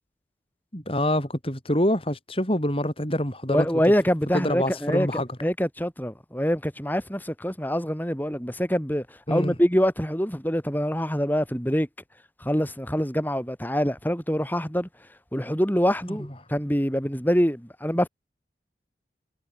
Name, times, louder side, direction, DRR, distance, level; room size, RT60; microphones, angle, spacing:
voice 1, 0.7-3.7 4.3-5.3 9.3-9.5 16.1-16.2, left 1 dB, 30° left, 7.3 m, -26 dB
voice 2, 3.5-5.1 5.4-11.9 12.4-14.9 15.3-18.1, equal, 10° left, 4.8 m, -25 dB
head